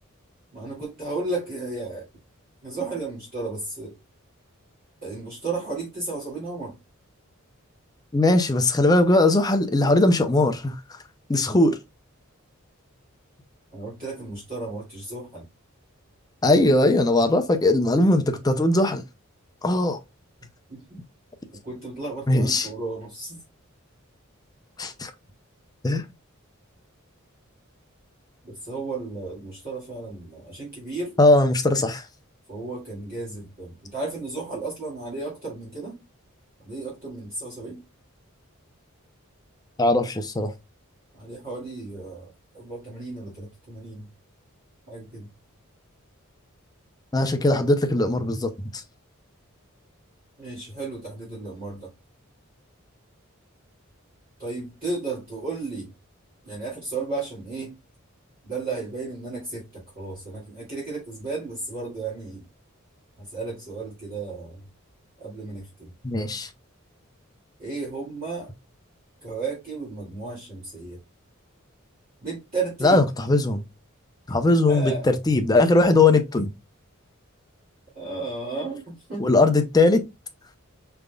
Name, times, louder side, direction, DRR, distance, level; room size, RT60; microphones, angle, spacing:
voice 1, 0.5-2.1 2.6-4.0 5.0-6.8 13.7-15.5 20.7-21.0 21.6-23.4 28.4-31.2 32.5-36.0 36.6-37.8 41.1-44.1 44.9-45.3 50.4-51.9 54.4-55.9 56.4-57.7 58.4-62.4 63.2-64.7 65.2-65.9 67.6-68.5 69.2-71.0 72.2-73.1 74.5-75.1 77.9-79.3, right 3 dB, 45° right, 2.1 m, -34 dB
voice 2, 8.1-10.8 11.3-11.8 16.4-19.0 19.6-20.0 22.3-22.7 24.8-25.1 25.8-26.0 31.2-32.1 39.8-40.5 47.1-48.8 66.0-66.5 72.8-73.6 74.3-76.5 79.2-80.0, left 2 dB, 20° left, 0.5 m, -20 dB
5.0 x 3.4 x 2.2 m
head